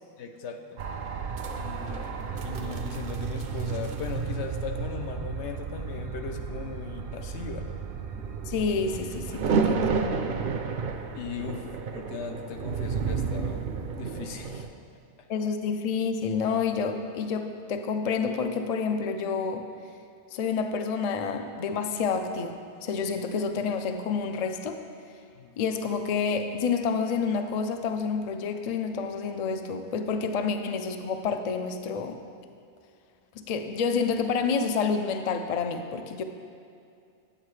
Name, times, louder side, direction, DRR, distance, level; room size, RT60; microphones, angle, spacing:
voice 1, 0.2-0.8 1.5-7.7 11.2-13.6 14.0-14.7 25.3-25.6, left 5 dB, 80° left, 5 dB, 0.9 m, -38 dB
sound 1, 0.8-14.7, right 5 dB, 60° right, 0.7 m, -32 dB
voice 2, 8.5-9.9 15.3-19.6 20.3-24.8 25.6-32.2 33.4-36.2, left 5 dB, 55° left, 7 dB, 0.4 m, -29 dB
8.8 x 8.3 x 3.2 m, 2.5 s
omnidirectional pair, 1.1 m